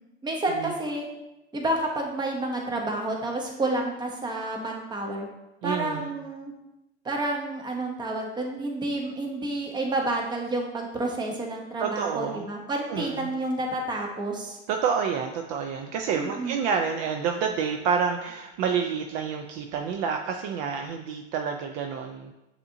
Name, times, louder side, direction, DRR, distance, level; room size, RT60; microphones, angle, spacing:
voice 1, 0.2-1.1 1.5-5.3 5.6-6.5 7.0-14.6 16.1-16.7, right 2 dB, 15° right, 1 dB, 0.7 m, -30 dB
voice 2, 5.6-6.1 11.8-12.4 12.9-13.3 14.7-22.3, right 6 dB, 50° right, 4 dB, 0.4 m, -28 dB
6.6 x 2.8 x 2.6 m, 0.96 s
hypercardioid pair, 110°, 33 cm